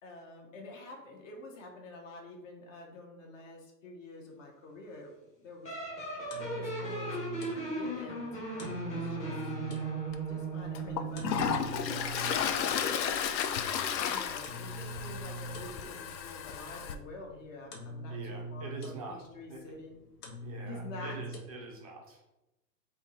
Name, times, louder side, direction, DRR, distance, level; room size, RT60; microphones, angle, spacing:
voice 1, 0.0-5.1 5.4-5.7 6.4-9.4 10.2-12.9 13.9-19.9 20.6-21.2, left 2 dB, 50° left, 0 dB, 1.0 m, -48 dB
sound 1, 5.7-11.7, right 3 dB, 15° left, 0.7 m, -37 dB
sound 2, 5.9-21.4, right 1 dB, 65° left, 1.3 m, -45 dB
Toilet flush, 10.1-10.2 10.8-17.0, left 8 dB, 90° left, 0.6 m, -33 dB
voice 2, 12.2-12.8 18.1-19.2 19.5-19.7 20.4-22.3, right 3 dB, 25° right, 0 dB, 0.4 m, -45 dB
3.5 x 2.7 x 4.2 m, 0.97 s
hypercardioid pair, 135°, 50 cm